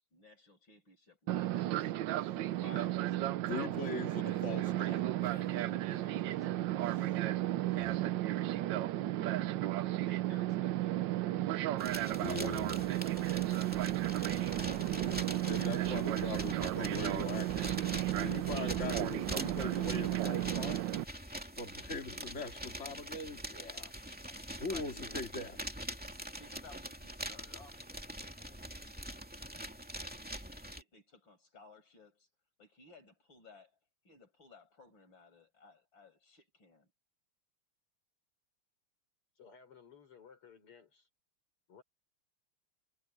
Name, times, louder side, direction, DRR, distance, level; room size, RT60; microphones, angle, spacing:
voice 1, 0.0-1.9 2.4-3.5 4.1-6.9 9.3-14.7 24.2-25.2 26.4-29.1 30.0-32.3 32.6-33.7 34.1-36.9, left 3 dB, 60° left, 6.8 m, -59 dB
Fixed-wing aircraft airplane, 1.3-21.0, right 14 dB, 70° right, 1.2 m, -34 dB
voice 2, 3.5-5.5 7.7-8.0 12.2-12.9 15.0-15.2 15.4-20.8 21.6-23.9 24.6-25.6, left 3 dB, 30° left, 3.1 m, -41 dB
sound 1, 11.8-30.8, equal, 5° right, 2.4 m, -44 dB
voice 3, 39.4-41.1 41.7-41.8, left 6 dB, 85° left, 5.9 m, -57 dB
omnidirectional pair, 2.4 m